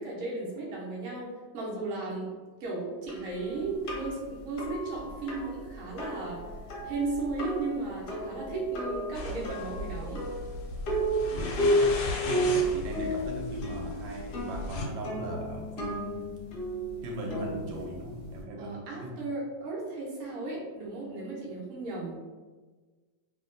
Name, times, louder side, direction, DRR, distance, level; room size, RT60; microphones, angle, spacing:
voice 1, 0.0-2.3 2.6-6.4 6.8-10.3 18.6-22.2, right 3 dB, 60° right, -4 dB, 1.0 m, -35 dB
sound 1, 3.1-18.4, equal, 65° left, 1.1 m, -33 dB
sound 2, 9.1-14.9, left 2 dB, 90° left, 1.3 m, -37 dB
voice 2, 11.3-11.9 12.2-16.3 17.0-19.1, right 1 dB, 85° right, 0 dB, 1.4 m, -38 dB
2.8 x 2.7 x 2.5 m, 1.3 s
omnidirectional pair, 2.1 m